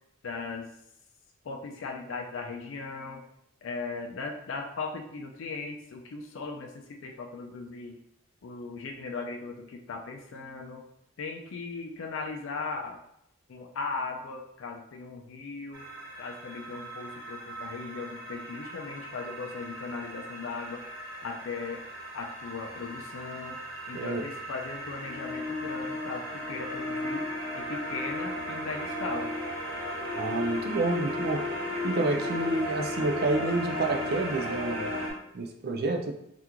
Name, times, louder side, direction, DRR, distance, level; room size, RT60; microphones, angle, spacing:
voice 1, 0.2-0.7 1.4-3.2 3.6-8.0 8.4-10.8 11.2-13.0 13.5-15.9 16.2-20.8 21.2-21.8 22.1-23.6 23.9-27.3 27.5-29.3, left 4 dB, 65° left, 2 dB, 0.4 m, -38 dB
sound 1, 15.7-35.1, left 1 dB, 65° right, 0.8 m, -35 dB
voice 2, 30.2-31.4 31.8-34.9 35.3-36.1, right 2 dB, 45° right, 4 dB, 0.4 m, -29 dB
2.9 x 2.5 x 3.5 m, 0.75 s
head